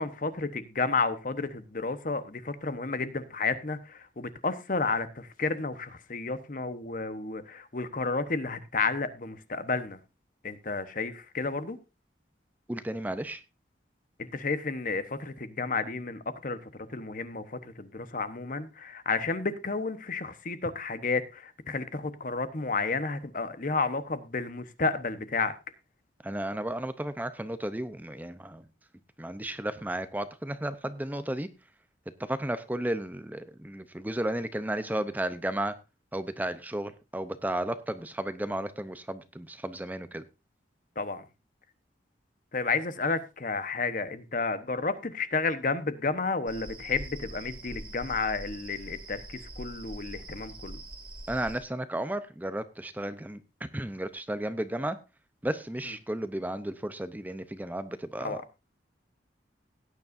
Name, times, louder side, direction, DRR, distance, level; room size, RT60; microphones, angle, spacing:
voice 1, 0.0-10.0 10.4-11.8 14.2-25.5 41.0-41.2 42.5-50.8 55.8-55.9 58.2-58.4, left 4 dB, 45° left, 1.0 m, -31 dB
voice 2, 12.7-13.4 26.2-28.6 29.2-31.5 32.2-35.7 36.1-40.2 51.3-53.4 53.7-55.0 55.4-58.4, right 1 dB, 10° right, 0.6 m, -33 dB
sound 1, 46.5-51.6, right 1 dB, 30° right, 2.2 m, -43 dB
17.5 x 9.6 x 2.6 m
head